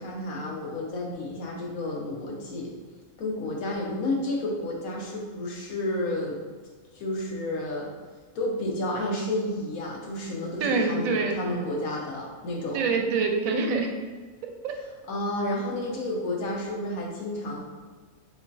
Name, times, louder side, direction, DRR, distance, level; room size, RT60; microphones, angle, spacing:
voice 1, 0.0-2.7 3.2-6.4 6.9-7.9 8.3-12.8 14.8-17.6, left 1 dB, 75° left, -2 dB, 1.3 m, -31 dB
voice 2, 10.6-11.4 12.7-13.9 14.6-14.8, right 4 dB, 75° right, 3 dB, 1.0 m, -25 dB
6.7 x 2.4 x 2.7 m, 1.4 s
omnidirectional pair, 1.5 m